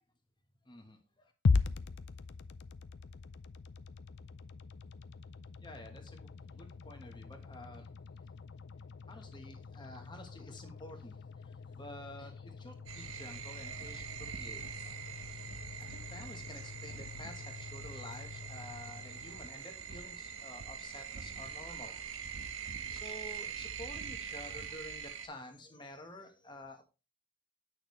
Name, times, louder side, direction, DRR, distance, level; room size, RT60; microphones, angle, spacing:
voice 1, 0.6-1.3 5.6-7.9 9.1-15.4 15.9-22.1 22.5-22.6 22.9-26.8, left 1 dB, 20° left, 5 dB, 1.3 m, -50 dB
sound 1, 1.5-19.7, left 4 dB, 55° left, 0.4 m, -40 dB
sound 2, 12.9-25.3, right 7 dB, 65° right, 0.9 m, -43 dB
8.9 x 6.1 x 3.1 m, 0.31 s
head